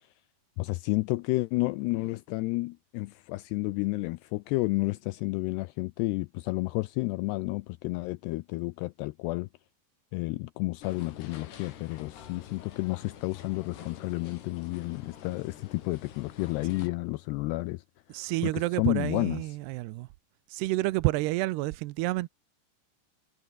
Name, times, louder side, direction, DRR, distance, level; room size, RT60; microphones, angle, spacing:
voice 1, 0.6-9.5 10.1-17.8 18.2-19.5, left 21 dB, 85° left, 2.4 m, -31 dB
sound 1, 10.8-16.9, left 9 dB, 65° left, 4.7 m, -47 dB
voice 2, 18.1-20.1 20.5-22.3, right 19 dB, 80° right, 2.5 m, -29 dB
omnidirectional pair, 5.3 m